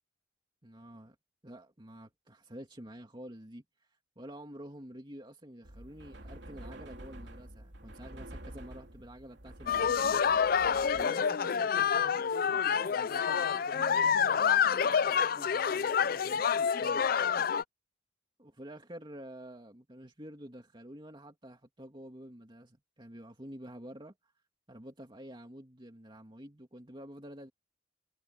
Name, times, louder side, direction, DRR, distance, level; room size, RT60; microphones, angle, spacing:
voice 1, 0.6-1.1 1.4-3.6 4.2-10.1 10.9-17.1 18.4-24.1 24.7-27.5, right 1 dB, 25° right, 2.7 m, -49 dB
sound 1, 5.6-11.1, right 1 dB, 65° right, 3.2 m, -48 dB
sound 2, 9.7-17.6, left 7 dB, 50° left, 0.4 m, -28 dB
head